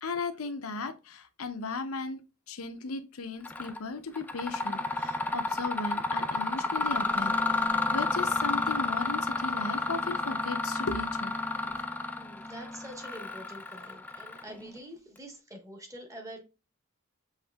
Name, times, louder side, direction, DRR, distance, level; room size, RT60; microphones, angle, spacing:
voice 1, 0.0-11.3, left 3 dB, 85° left, 0.7 m, -36 dB
Mechanisms, 3.4-3.8 4.1-14.7, left 2 dB, 10° left, 0.3 m, -31 dB
voice 2, 12.2-16.4, right 1 dB, 15° right, 1.1 m, -46 dB
7.2 x 3.1 x 2.2 m
head